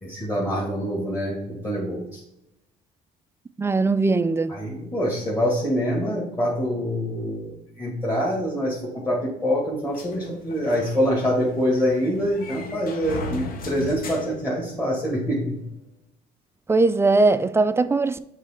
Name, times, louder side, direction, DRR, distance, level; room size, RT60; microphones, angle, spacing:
voice 1, 0.0-2.2 4.5-15.6, equal, 20° left, 2.0 m, -25 dB
voice 2, 3.6-4.5 16.7-18.2, right 3 dB, 15° right, 0.3 m, -20 dB
sound 1, 9.9-15.2, left 2 dB, 55° left, 1.2 m, -37 dB
7.4 x 3.3 x 4.5 m
cardioid pair, 110°, 17 cm